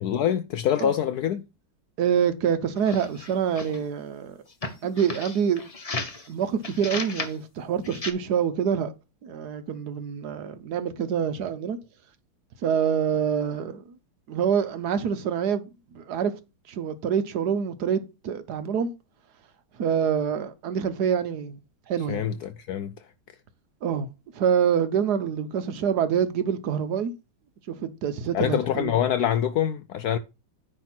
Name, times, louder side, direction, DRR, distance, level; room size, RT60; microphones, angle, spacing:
voice 1, 0.0-1.4 22.1-22.9 28.3-30.2, left 10 dB, 85° left, 0.8 m, -25 dB
voice 2, 2.0-4.4 4.8-5.7 6.3-8.9 9.2-11.8 12.6-13.8 14.3-16.3 16.7-18.9 19.8-21.6 21.9-22.2 23.8-24.1 24.3-27.1 27.7-28.9, right 8 dB, 60° right, 1.2 m, -26 dB
sound 1, 2.8-3.8 4.5-6.3 6.6-7.4 7.8-8.1, left 3 dB, 30° left, 0.6 m, -34 dB
9.8 x 3.6 x 5.9 m
omnidirectional pair, 2.2 m